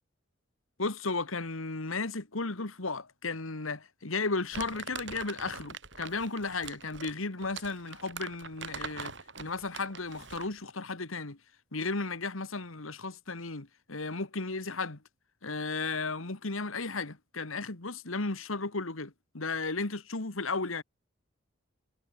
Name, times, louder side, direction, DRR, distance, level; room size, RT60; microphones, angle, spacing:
voice 1, 0.8-9.1 9.4-11.4 11.7-15.0 15.4-20.8, left 3 dB, 80° left, 2.0 m, -34 dB
Crumpling crinkling, 4.5-10.6, right 5 dB, 60° right, 7.3 m, -43 dB
head